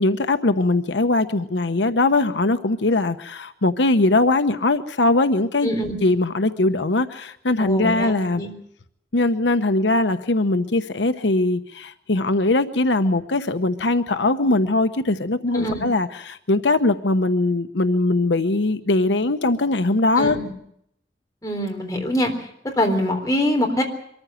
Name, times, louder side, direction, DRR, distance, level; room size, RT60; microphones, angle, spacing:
voice 1, 0.0-5.7 6.0-8.4 9.1-20.4, left 2 dB, 90° left, 10 dB, 1.0 m, -21 dB
voice 2, 5.6-6.0 7.6-8.5 15.5-15.8 20.2-20.5 21.4-22.3 22.8-23.8, equal, 20° left, 2 dB, 3.8 m, -24 dB
24.0 x 14.5 x 9.0 m, 0.73 s
head